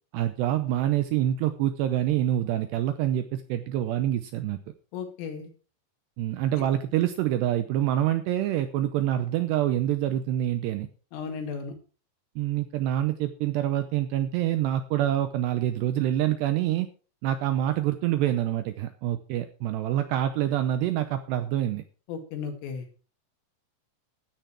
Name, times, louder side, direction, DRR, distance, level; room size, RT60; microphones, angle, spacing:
voice 1, 0.1-4.6 6.2-10.9 12.4-16.9 17.2-21.8, right 12 dB, 85° right, 9 dB, 2.4 m, -26 dB
voice 2, 4.9-5.5 11.1-11.7 22.1-22.9, left 6 dB, 80° left, 4 dB, 4.8 m, -35 dB
13.0 x 9.5 x 4.7 m, 0.37 s
omnidirectional pair, 5.8 m